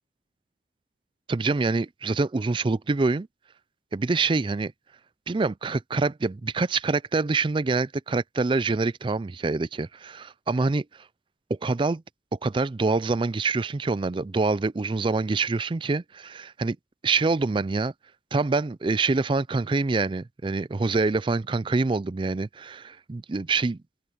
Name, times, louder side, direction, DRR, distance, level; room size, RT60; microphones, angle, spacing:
voice 1, 1.3-3.3 3.9-4.7 5.3-10.8 11.5-12.0 12.3-16.8 17.0-17.9 18.3-23.8, right 3 dB, 25° right, 0.4 m, -25 dB
open air
head